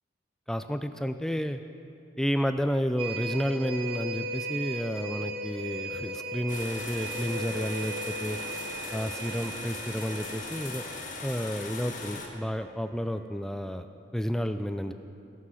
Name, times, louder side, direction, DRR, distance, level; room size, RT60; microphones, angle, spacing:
voice 1, 0.5-1.6 2.2-8.4 8.9-10.9 11.2-13.9 14.1-14.9, equal, 5° left, 9 dB, 0.3 m, -31 dB
sound 1, 3.0-12.7 13.1-13.2, right 2 dB, 30° right, 1.0 m, -38 dB
sound 2, 6.5-12.3, left 3 dB, 45° left, 1.2 m, -39 dB
18.0 x 6.2 x 5.7 m, 2.6 s
head